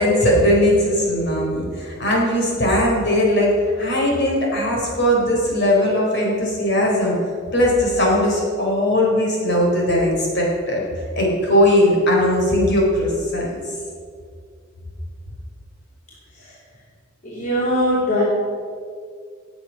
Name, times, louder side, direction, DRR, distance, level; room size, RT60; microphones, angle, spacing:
voice 1, 0.0-7.1 7.5-10.8 11.1-13.5, left 1 dB, 60° left, -2 dB, 4.3 m, -19 dB
voice 2, 17.2-18.2, equal, 40° left, -7 dB, 3.2 m, -21 dB
18.0 x 8.2 x 5.9 m, 2.1 s
head